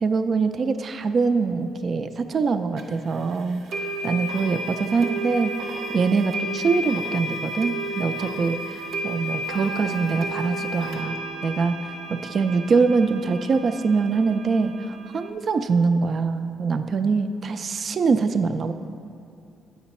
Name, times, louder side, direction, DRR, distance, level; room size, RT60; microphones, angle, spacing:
voice 1, 0.0-18.7, right 4 dB, 50° right, 9 dB, 0.3 m, -24 dB
sound 1, 2.8-2.9 3.7-15.3, right 1 dB, 80° right, 0.7 m, -32 dB
8.0 x 5.9 x 4.2 m, 2.6 s
cardioid pair, 90°, 0 cm